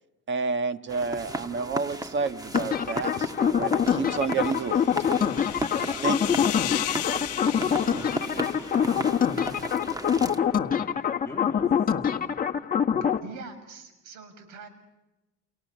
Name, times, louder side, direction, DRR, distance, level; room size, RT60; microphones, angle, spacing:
voice 1, 0.3-3.3 3.6-4.9 6.0-6.3, right 5 dB, 40° right, 11 dB, 1.5 m, -30 dB
sound 1, 0.9-10.4, right 1 dB, 10° right, 1.4 m, -35 dB
sound 2, 2.5-13.2, left 8 dB, 30° left, 1.7 m, -25 dB
sound 3, 4.0-9.5, left 13 dB, 55° left, 1.2 m, -36 dB
voice 2, 7.8-12.4, left 2 dB, 10° left, 1 dB, 2.1 m, -45 dB
voice 3, 13.0-14.7, right 4 dB, 90° right, 9 dB, 6.8 m, -43 dB
29.5 x 29.5 x 6.8 m, 1.0 s
cardioid pair, 135°, 29 cm